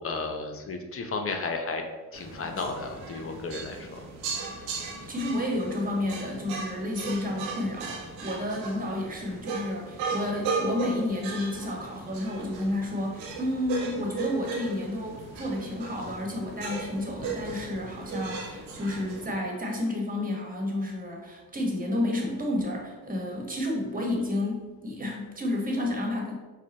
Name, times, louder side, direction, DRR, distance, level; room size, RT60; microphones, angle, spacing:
voice 1, 0.0-1.8 2.1-4.0, left 3 dB, 35° left, 5 dB, 0.7 m, -33 dB
sound 1, 2.1-19.3, right 4 dB, 80° right, 1.0 m, -36 dB
voice 2, 5.1-26.4, left 1 dB, 20° right, 0 dB, 1.4 m, -31 dB
4.8 x 2.2 x 4.2 m, 1.2 s
hypercardioid pair, 65°, 41 cm